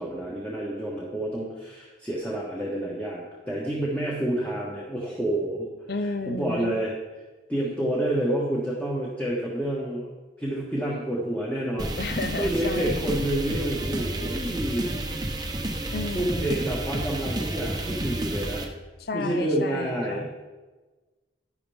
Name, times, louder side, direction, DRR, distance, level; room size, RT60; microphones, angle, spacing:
voice 1, 0.0-5.7 6.0-6.9 7.5-10.1 10.4-12.0 12.4-14.9 16.1-18.6 19.1-20.3, right 1 dB, 10° left, -5 dB, 1.5 m, -28 dB
voice 2, 5.9-6.8 12.0-13.1 15.9-16.7 19.0-20.3, left 2 dB, 55° left, 10 dB, 0.6 m, -32 dB
sound 1, 11.8-18.7, right 1 dB, 20° right, 0.9 m, -31 dB
12.0 x 10.5 x 3.5 m, 1.2 s
head